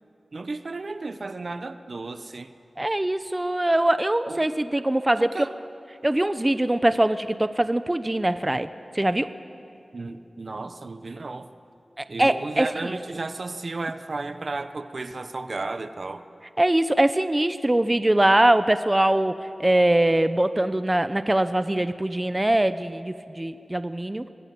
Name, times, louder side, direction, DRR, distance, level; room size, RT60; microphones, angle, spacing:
voice 1, 0.3-2.5 4.3-4.5 5.2-5.6 9.9-11.5 12.1-16.3, right 3 dB, 65° right, 10 dB, 1.0 m, -34 dB
voice 2, 2.8-5.4 6.0-8.7 8.9-9.3 12.0-13.0 16.6-24.3, right 1 dB, 25° right, 12 dB, 0.8 m, -22 dB
25.5 x 20.0 x 7.7 m, 2.6 s
cardioid pair, 50°, 0 cm